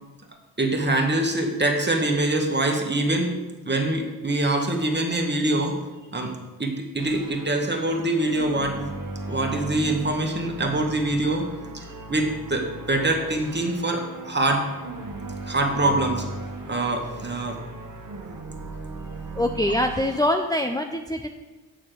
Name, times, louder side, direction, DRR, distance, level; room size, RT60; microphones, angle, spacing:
voice 1, 0.6-3.3 3.7-5.7 6.1-6.3 6.6-8.9 9.3-11.4 11.7-14.6 15.4-16.3 16.7-17.6, right 2 dB, 25° right, 2 dB, 1.9 m, -24 dB
sound 1, 7.0-20.2, right 3 dB, 50° right, 1.5 m, -37 dB
voice 2, 19.3-21.3, left 1 dB, 10° left, 4 dB, 0.7 m, -24 dB
7.1 x 6.5 x 6.8 m, 1.2 s
cardioid pair, 50°, 40 cm